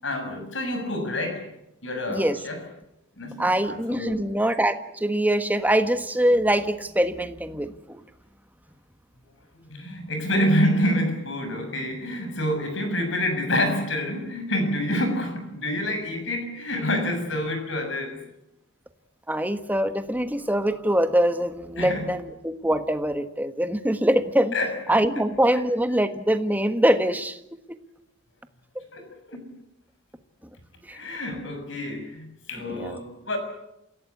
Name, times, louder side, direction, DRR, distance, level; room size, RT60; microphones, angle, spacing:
voice 1, 0.0-1.5 1.8-2.6 3.2-4.2 9.5-18.2 21.8-22.1 24.5-24.7 28.9-29.5 30.9-33.4, left 1 dB, 65° left, 6 dB, 6.8 m, -27 dB
voice 2, 3.4-8.0 19.3-24.5 24.9-27.4 27.7-27.8 30.9-31.0 32.7-33.0, right 1 dB, 10° right, 9 dB, 1.4 m, -23 dB
28.0 x 16.5 x 8.4 m, 0.86 s
head